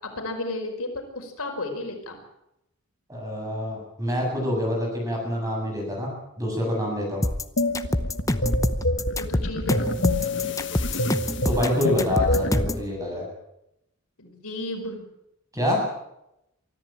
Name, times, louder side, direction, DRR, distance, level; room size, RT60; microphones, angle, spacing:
voice 1, 0.0-2.2 9.2-9.9 14.2-15.0, left 2 dB, 85° left, 3 dB, 5.3 m, -33 dB
voice 2, 3.1-7.2 11.4-13.3 15.5-15.8, left 1 dB, 15° right, 0 dB, 7.7 m, -26 dB
sound 1, 7.2-12.9, left 1 dB, 15° left, 0.8 m, -26 dB
sound 2, 7.6-12.7, left 1 dB, 55° left, 1.6 m, -27 dB
24.0 x 14.0 x 8.9 m, 0.85 s
head